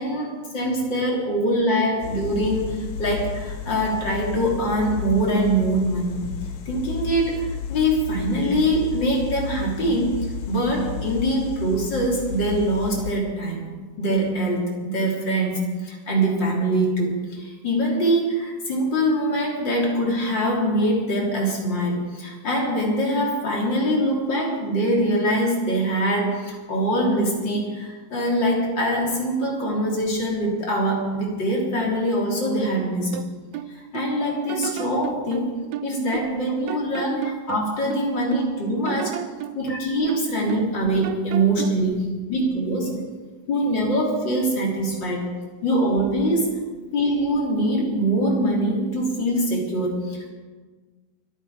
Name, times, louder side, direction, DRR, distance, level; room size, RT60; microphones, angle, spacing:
voice 1, 0.0-6.2 6.7-10.1 10.5-13.6 14.0-33.2 33.7-35.5 35.8-39.2 39.5-42.9 43.5-45.2 45.6-46.5 46.9-50.3, right 1 dB, 35° left, -2 dB, 3.7 m, -23 dB
sound 1, 2.0-13.1, left 7 dB, 80° left, 1.2 m, -33 dB
sound 2, 33.1-34.1 34.5-36.4 36.7-38.5 38.8-40.8 41.0-41.8, right 12 dB, 85° right, 1.6 m, -33 dB
24.5 x 9.5 x 5.0 m, 1.4 s
omnidirectional pair, 3.9 m